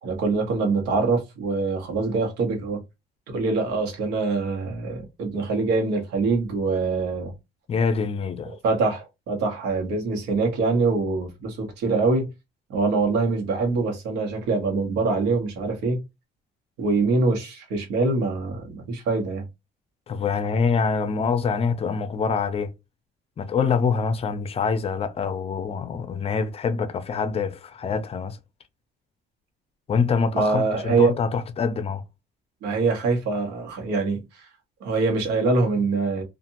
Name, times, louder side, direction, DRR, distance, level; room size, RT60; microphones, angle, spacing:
voice 1, 0.0-2.8 3.3-7.3 8.6-12.3 12.7-16.0 16.8-19.5 30.3-31.1 32.6-34.5 34.8-36.2, right 3 dB, 90° right, 1.1 m, -24 dB
voice 2, 7.7-8.5 20.1-22.7 23.4-28.4 29.9-32.0, left 5 dB, 35° left, 0.5 m, -25 dB
2.7 x 2.5 x 2.6 m
cardioid pair, 110°, 17 cm